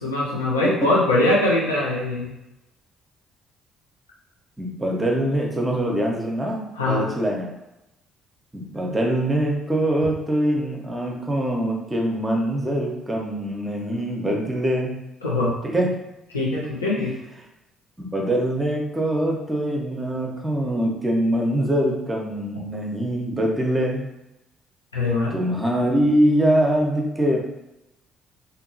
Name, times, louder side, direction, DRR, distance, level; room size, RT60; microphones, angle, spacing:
voice 1, 0.0-2.3 6.8-7.0 15.2-15.5 16.3-17.1 24.9-25.3, left 2 dB, 85° left, -6 dB, 0.7 m, -22 dB
voice 2, 4.6-7.5 8.5-15.0 15.6-16.0 18.0-24.1 25.3-27.4, right 1 dB, 15° right, 0 dB, 0.8 m, -23 dB
2.8 x 2.6 x 2.7 m, 0.92 s
figure-of-eight pair, 45°, 0 cm